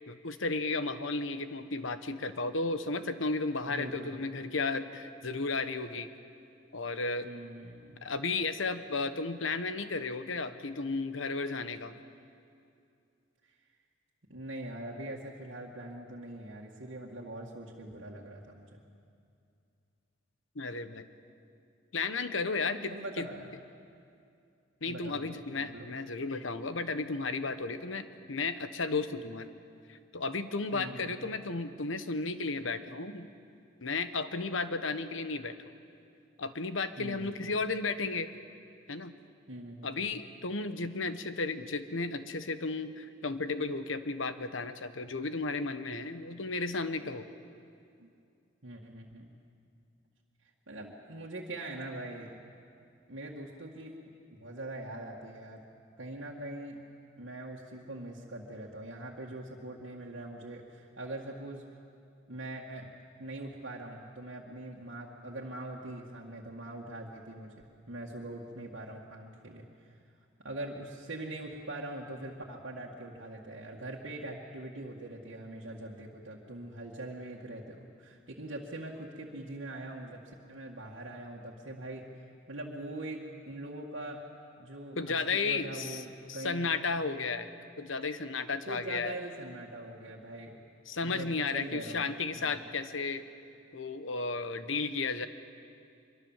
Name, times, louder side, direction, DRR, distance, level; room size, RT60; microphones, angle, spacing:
voice 1, 0.1-6.1 6.7-7.3 8.0-12.0 20.5-21.1 21.9-23.3 24.8-29.5 29.9-33.3 33.8-35.5 36.4-38.3 38.9-39.1 39.8-47.2 85.0-86.0 86.3-87.5 87.8-89.1 90.9-93.2 93.7-95.3, left 3 dB, 75° left, 10 dB, 1.2 m, -34 dB
voice 2, 3.7-4.2 7.2-8.0 14.3-18.8 22.9-23.5 24.9-25.9 30.7-31.2 37.0-37.6 39.5-40.2 48.0-48.1 48.6-49.3 50.7-52.4 53.1-53.9 54.4-55.6 56.0-56.8 57.2-61.6 62.3-62.9 63.2-69.9 70.4-84.2 84.6-85.2 85.5-86.7 88.7-90.6 91.0-92.5, right 1 dB, 70° right, -4 dB, 2.0 m, -42 dB
24.5 x 23.0 x 7.4 m, 2.5 s
head